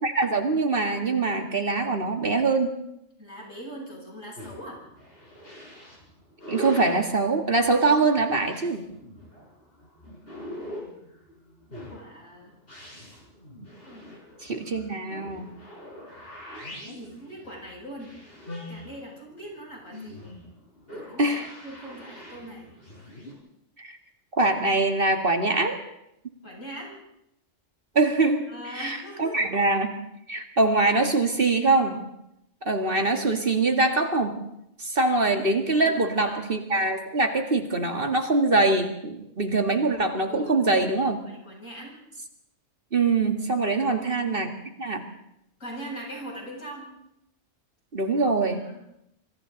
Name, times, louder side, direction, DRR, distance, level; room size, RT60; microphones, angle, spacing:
voice 1, 0.0-2.7 6.5-8.8 14.4-15.5 21.2-21.5 23.8-24.0 24.3-25.8 28.0-29.9 30.3-32.0 32.6-34.4 34.8-41.2 42.9-44.5 44.8-45.0 47.9-48.6, right 3 dB, 45° right, 4 dB, 2.1 m, -23 dB
voice 2, 3.2-4.8 10.6-11.0 11.9-12.5 13.8-14.2 16.7-18.1 18.7-20.3 20.9-21.4 21.6-22.7 26.4-27.0 28.5-29.5 35.7-36.4 40.2-40.9 41.2-42.0 43.7-44.1 45.6-46.9 48.5-48.8, equal, 70° left, -1 dB, 7.9 m, -41 dB
sound 1, 4.4-23.3, left 1 dB, 45° left, 6.4 m, -42 dB
26.5 x 25.0 x 4.0 m, 0.81 s
omnidirectional pair, 1.4 m